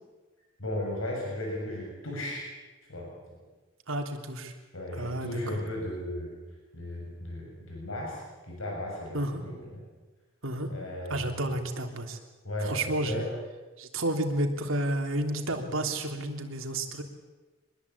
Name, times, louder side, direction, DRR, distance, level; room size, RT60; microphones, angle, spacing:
voice 1, 0.6-2.5 2.9-3.1 4.7-6.3 6.7-8.2 8.5-9.8 10.7-11.3 12.4-13.3, left 1 dB, 80° left, -1 dB, 7.2 m, -35 dB
voice 2, 3.9-4.5 4.9-5.6 9.1-9.5 10.4-10.7 11.1-12.2 12.6-13.3 13.8-17.0, right 1 dB, 75° right, 4 dB, 3.2 m, -31 dB
24.5 x 21.0 x 8.6 m, 1.2 s
head